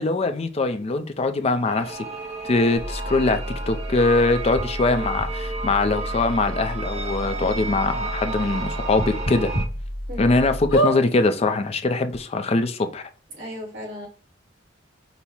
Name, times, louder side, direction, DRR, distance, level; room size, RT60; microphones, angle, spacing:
voice 1, 0.0-2.0 2.4-3.4 3.7-9.5 10.2-13.0, left 3 dB, 30° left, 0.4 m, -22 dB
sound 1, 1.6-9.6, right 4 dB, 35° right, 0.6 m, -33 dB
sound 2, 2.7-10.7, equal, 55° right, 1.6 m, -32 dB
sound 3, 4.6-4.7 5.2-5.3 6.2-6.3 6.7-6.8 7.2-7.3 8.9-9.6 10.1-10.2 10.7-11.0 11.8-11.9 12.1-12.2, right 1 dB, 70° left, 1.4 m, -23 dB
voice 2, 13.3-14.1, left 1 dB, 70° right, 2.2 m, -35 dB
5.4 x 2.0 x 4.4 m
head